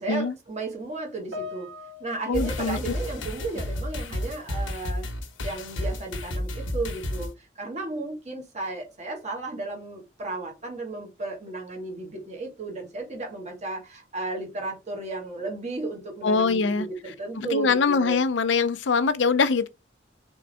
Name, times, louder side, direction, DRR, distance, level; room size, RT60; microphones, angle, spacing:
voice 1, 0.0-1.7 2.0-5.1 5.4-18.2, right 3 dB, 35° right, 1.4 m, -34 dB
Piano, 1.3-4.6 5.3-5.5, left 4 dB, 70° right, 1.9 m, -43 dB
sound 1, 2.3-7.3, left 1 dB, 80° left, 1.0 m, -31 dB
voice 2, 2.3-2.9 16.2-16.9 17.4-19.7, left 4 dB, 65° left, 0.5 m, -23 dB
3.9 x 3.5 x 3.3 m
head